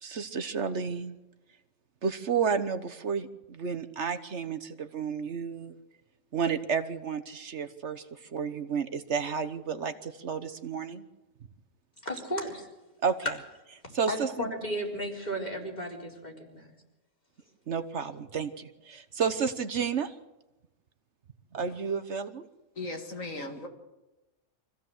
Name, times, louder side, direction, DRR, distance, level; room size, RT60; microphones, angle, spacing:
voice 1, 0.0-1.1 2.0-5.8 6.3-11.0 13.0-13.3 13.9-14.5 17.7-20.1 21.5-22.4, right 6 dB, 60° right, 10 dB, 1.3 m, -31 dB
voice 2, 12.0-12.7 13.2-13.3 13.8-16.7, equal, 30° left, -1 dB, 4.5 m, -34 dB
voice 3, 22.8-23.7, left 2 dB, 80° left, 4 dB, 2.6 m, -37 dB
25.0 x 15.5 x 7.9 m, 1.0 s
omnidirectional pair, 1.4 m